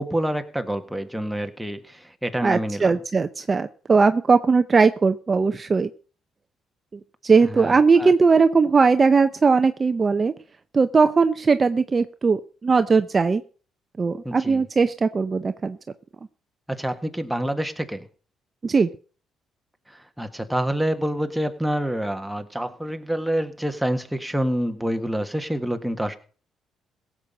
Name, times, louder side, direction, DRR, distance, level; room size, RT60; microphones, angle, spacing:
voice 1, 0.0-2.9 7.4-8.1 14.2-14.6 16.7-18.1 20.2-26.1, equal, ahead, 6 dB, 1.6 m, -27 dB
voice 2, 2.4-5.9 6.9-10.3 10.7-13.4 14.0-15.8 18.6-18.9, right 4 dB, 30° right, 10 dB, 0.6 m, -19 dB
16.5 x 7.5 x 5.2 m, 0.39 s
cardioid pair, 95°, 0 cm